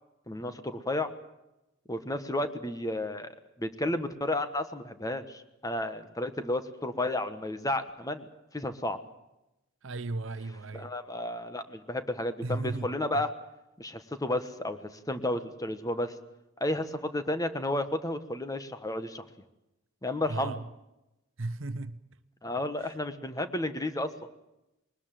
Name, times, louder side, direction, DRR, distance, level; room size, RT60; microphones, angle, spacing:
voice 1, 0.3-1.1 1.9-8.3 8.5-9.0 10.7-13.3 13.8-16.1 16.6-19.2 20.0-20.6 22.4-24.1, left 1 dB, 15° left, 1.4 m, -32 dB
voice 2, 9.8-10.9 12.4-13.2 20.3-20.6 21.4-22.0 22.8-22.9, right 2 dB, 65° right, 0.9 m, -35 dB
21.5 x 20.0 x 7.6 m
head